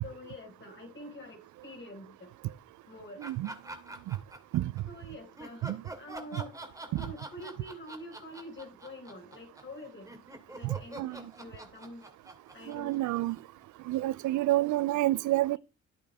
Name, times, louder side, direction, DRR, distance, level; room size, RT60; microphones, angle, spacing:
voice 1, 0.0-2.3 2.8-3.2 4.9-6.6 6.9-10.1 10.5-12.1 12.5-13.0, left 1 dB, 40° left, 5.2 m, -46 dB
sound 1, 3.2-4.8 5.4-13.6, right 1 dB, 10° right, 2.4 m, -45 dB
voice 2, 3.2-3.5 4.1-4.2 4.5-4.7 5.6-5.8 6.9-7.1 10.6-11.2 12.7-13.4 13.9-15.6, right 16 dB, 75° right, 0.5 m, -29 dB
13.5 x 8.4 x 3.5 m
cardioid pair, 90°, 30 cm